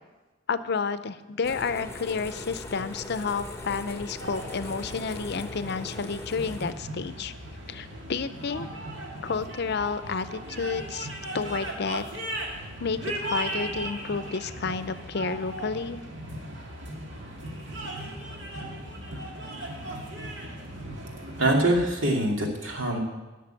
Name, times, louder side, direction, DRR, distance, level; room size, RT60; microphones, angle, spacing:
voice 1, 0.5-7.3 7.7-8.7 9.2-11.1 11.3-12.0 12.8-16.0, left 5 dB, 60° left, 13 dB, 0.6 m, -30 dB
sound 1, 1.4-6.7, left 2 dB, 15° left, 1.1 m, -40 dB
sound 2, 4.2-21.8, right 1 dB, 65° right, 2.2 m, -37 dB
voice 2, 21.4-23.0, right 1 dB, 90° right, 0 dB, 2.4 m, -24 dB
11.5 x 6.7 x 9.0 m, 1.2 s
head